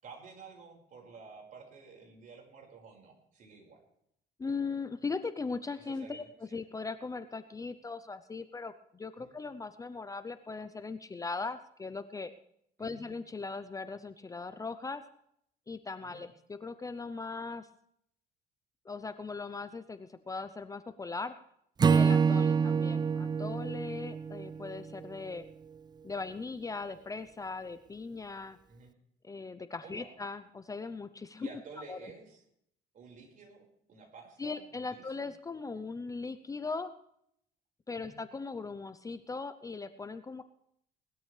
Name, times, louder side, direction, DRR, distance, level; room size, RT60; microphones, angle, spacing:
voice 1, 0.0-3.8 5.8-6.6 9.2-9.3 12.8-13.1 16.0-16.2 22.4-22.6 28.7-28.9 29.8-30.2 31.4-32.4 32.9-33.6 33.9-35.3 37.9-38.2, right 4 dB, 50° right, 0 dB, 5.1 m, -52 dB
voice 2, 4.4-12.3 12.8-15.0 15.7-17.7 18.8-21.3 21.8-25.4 26.0-28.6 29.2-31.5 31.8-32.1 34.4-36.9 37.9-40.4, left 4 dB, 20° left, 11 dB, 0.7 m, -39 dB
Acoustic guitar / Strum, 21.8-25.1, right 6 dB, 25° right, 0.4 m, -27 dB
19.5 x 12.5 x 3.3 m, 0.72 s
cardioid pair, 110°, 17 cm